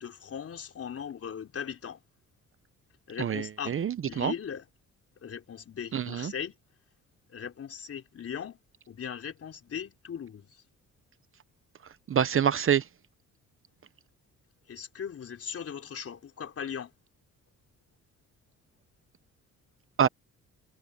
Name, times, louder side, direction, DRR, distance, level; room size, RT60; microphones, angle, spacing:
voice 1, 0.0-2.0 3.1-3.8 4.0-4.6 5.2-6.5 7.3-8.6 8.9-10.6 14.7-16.9, left 8 dB, 50° left, 4.1 m, -38 dB
voice 2, 3.2-4.3 5.9-6.3 12.1-12.8 20.0-20.1, right 8 dB, 45° right, 0.9 m, -26 dB
cardioid pair, 90°, 30 cm